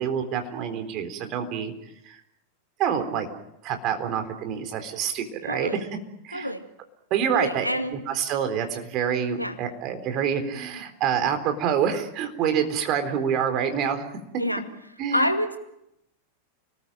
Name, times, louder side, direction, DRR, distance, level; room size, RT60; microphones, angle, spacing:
voice 1, 0.0-1.7 2.0-2.2 2.8-3.3 3.6-5.9 6.2-6.5 7.1-7.7 7.9-14.0 15.0-15.3, right 8 dB, 40° right, 6 dB, 3.9 m, -27 dB
voice 2, 5.5-5.8 6.3-6.6 7.3-8.0 9.4-9.6 14.4-14.6 15.1-15.6, equal, 90° left, 7 dB, 2.1 m, -27 dB
29.0 x 20.0 x 7.7 m, 0.83 s
figure-of-eight pair, 90°, 0 cm